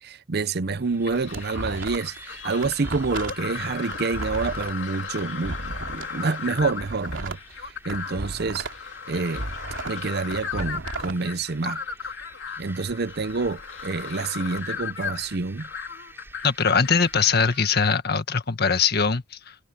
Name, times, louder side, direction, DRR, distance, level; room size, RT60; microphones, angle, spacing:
voice 1, 0.0-8.7 9.1-9.4 9.9-11.8 12.6-15.7, right 4 dB, 55° right, 0.7 m, -28 dB
sound 1, 0.6-17.6, right 2 dB, 10° right, 7.4 m, -49 dB
sound 2, 0.9-2.2 2.5-6.1 6.5-8.8 9.1-11.1, right 2 dB, 80° right, 2.9 m, -35 dB
sound 3, 1.0-18.0, left 6 dB, 70° left, 2.8 m, -36 dB
voice 2, 16.4-19.5, left 5 dB, 55° left, 1.7 m, -22 dB
head